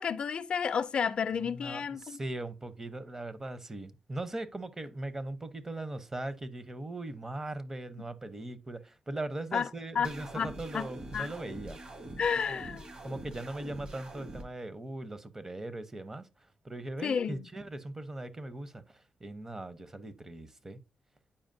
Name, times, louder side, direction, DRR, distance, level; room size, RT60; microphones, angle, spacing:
voice 1, 0.0-2.2 9.5-9.7 10.0-10.1 10.4-10.9 11.1-11.3 12.2-12.8 17.0-17.5, left 6 dB, 55° left, 0.4 m, -31 dB
voice 2, 1.4-11.8 12.5-12.6 13.0-16.3 16.6-20.8, right 2 dB, 25° right, 0.7 m, -40 dB
sound 1, 10.0-14.4, right 1 dB, 55° right, 1.9 m, -44 dB
8.6 x 4.9 x 2.6 m
cardioid pair, 70°, 2 cm